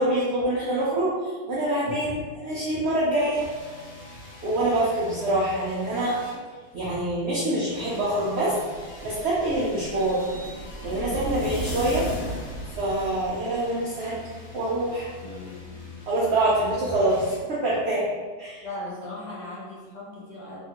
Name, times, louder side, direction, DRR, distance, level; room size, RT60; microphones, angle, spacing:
voice 1, 0.0-3.5 4.4-6.2 6.7-8.6 9.0-10.2 10.8-12.1 12.8-15.1 16.1-18.6, right 1 dB, 70° right, -7 dB, 0.6 m, -25 dB
sound 1, 3.3-7.1 7.7-17.4, left 2 dB, 65° left, 1.1 m, -45 dB
sound 2, 8.7-13.6, left 1 dB, 85° left, 1.2 m, -35 dB
voice 2, 15.2-15.8 18.6-20.6, left 2 dB, 50° left, -7 dB, 0.5 m, -38 dB
2.8 x 2.4 x 2.8 m, 1.4 s
omnidirectional pair, 1.7 m